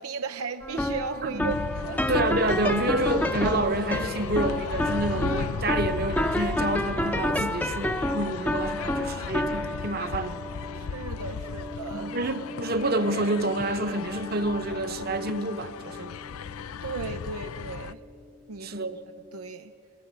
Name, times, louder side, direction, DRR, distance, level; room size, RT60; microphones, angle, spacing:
voice 1, 0.0-2.0 7.8-8.3 10.7-12.1 16.8-18.0 18.5-19.0 19.3-19.7, right 5 dB, 90° right, 0.6 m, -36 dB
sound 1, 0.6-17.8, left 1 dB, 10° left, 0.7 m, -31 dB
voice 2, 1.2-1.6 2.1-10.4 11.9-16.1 18.6-19.0, right 2 dB, 45° right, 1.0 m, -28 dB
sound 2, 1.4-17.9, left 6 dB, 80° left, 0.5 m, -36 dB
21.5 x 17.5 x 8.9 m
head